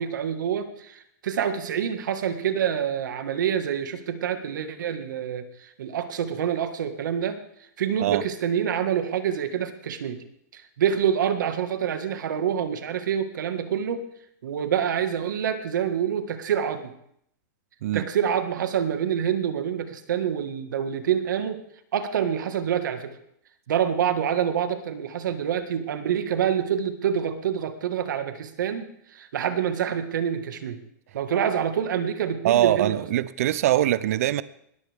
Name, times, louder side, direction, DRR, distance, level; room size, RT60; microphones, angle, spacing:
voice 1, 0.0-7.4 7.8-10.2 10.5-14.0 14.4-16.9 17.9-21.6 21.9-23.2 23.7-30.8 31.1-33.0, right 8 dB, 85° right, 8 dB, 1.8 m, -26 dB
voice 2, 32.4-34.4, right 13 dB, 50° right, 17 dB, 0.5 m, -22 dB
20.0 x 14.5 x 3.6 m, 0.72 s
supercardioid pair, 180°, 10 cm